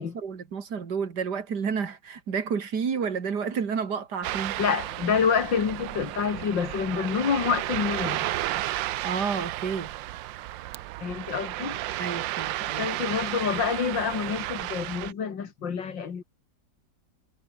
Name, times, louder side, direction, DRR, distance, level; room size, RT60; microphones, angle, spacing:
voice 1, 0.2-4.6 9.0-9.9 12.0-13.1, right 6 dB, 60° right, 2.7 m, -30 dB
Ocean, 4.2-15.1, right 15 dB, 90° right, 1.4 m, -33 dB
voice 2, 4.6-8.3 11.0-11.8 12.8-16.2, left 6 dB, 80° left, 2.8 m, -27 dB
omnidirectional pair, 2.0 m